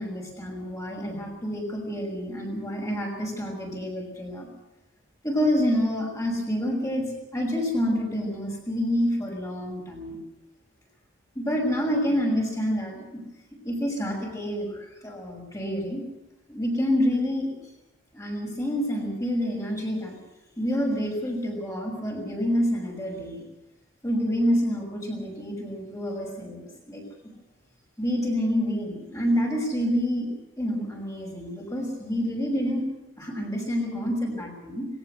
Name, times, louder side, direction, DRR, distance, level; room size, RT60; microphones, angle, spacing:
voice 1, 0.0-4.5 5.2-7.1 7.3-10.2 11.3-13.2 13.6-16.0 16.5-17.5 18.1-20.2 20.6-23.4 24.0-27.0 28.0-32.8 33.2-34.9, equal, 20° left, 0 dB, 6.1 m, -28 dB
20.0 x 18.5 x 8.1 m, 0.99 s
head